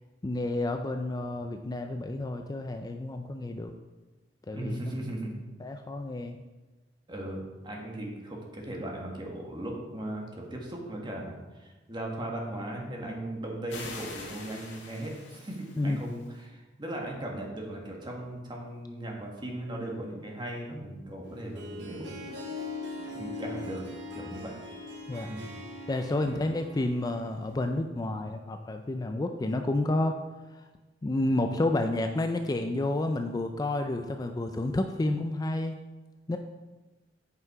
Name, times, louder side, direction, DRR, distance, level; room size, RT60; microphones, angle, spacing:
voice 1, 0.2-3.7 4.5-4.8 5.6-6.4 15.8-16.0 25.1-25.3 25.9-30.2 31.0-35.8 36.3-36.4, left 2 dB, 20° left, 6 dB, 0.4 m, -30 dB
voice 2, 4.5-5.4 7.1-22.2 22.4-22.5 23.0-23.8 24.1-24.5 25.3-25.5 26.2-26.4, right 1 dB, 25° right, 0 dB, 1.5 m, -38 dB
sound 1, 13.7-16.3, left 3 dB, 80° left, 1.8 m, -44 dB
Harp, 21.2-27.7, left 2 dB, 70° right, 1.3 m, -41 dB
8.2 x 5.7 x 4.7 m, 1.2 s
head